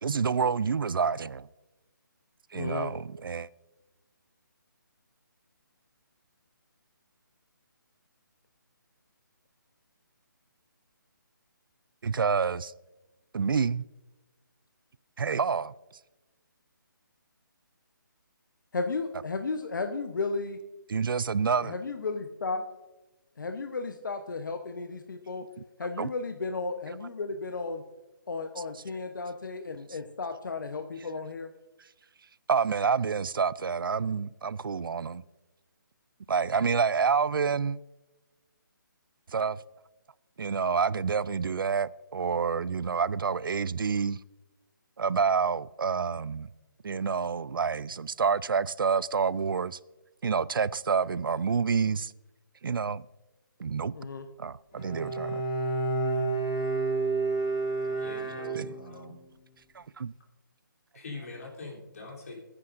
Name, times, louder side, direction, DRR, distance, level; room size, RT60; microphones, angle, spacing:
voice 1, 0.0-1.5 2.5-3.5 12.0-12.7 13.3-13.8 15.2-15.7 20.9-21.8 26.0-26.1 32.5-35.2 36.3-37.8 39.3-39.6 40.4-44.2 45.0-46.5 46.8-49.8 50.2-52.1 52.6-53.0 53.6-53.9 54.4-55.4 58.5-58.7 59.8-60.1, right 5 dB, 80° right, 0.4 m, -28 dB
voice 2, 2.5-2.9 18.7-20.6 21.6-22.6 23.4-25.5 25.8-27.8 28.3-31.5 53.9-54.3, left 3 dB, 65° left, 0.9 m, -34 dB
Bowed string instrument, 54.7-59.1, right 3 dB, 30° left, 2.2 m, -30 dB
voice 3, 58.0-59.2 60.9-62.4, left 3 dB, 45° left, 3.4 m, -43 dB
18.5 x 9.7 x 2.6 m
hypercardioid pair, 175°, 11 cm